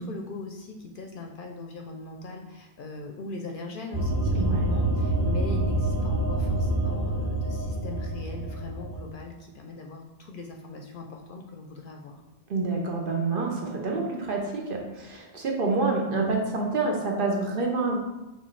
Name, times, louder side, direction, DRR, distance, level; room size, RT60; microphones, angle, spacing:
voice 1, 0.0-12.2, left 3 dB, 60° left, 2 dB, 0.6 m, -40 dB
sound 1, 3.9-9.1, right 1 dB, 25° right, 0.7 m, -27 dB
voice 2, 4.4-4.7 12.5-18.0, right 3 dB, 55° right, 0 dB, 0.9 m, -27 dB
6.2 x 2.6 x 3.2 m, 1.0 s
omnidirectional pair, 1.1 m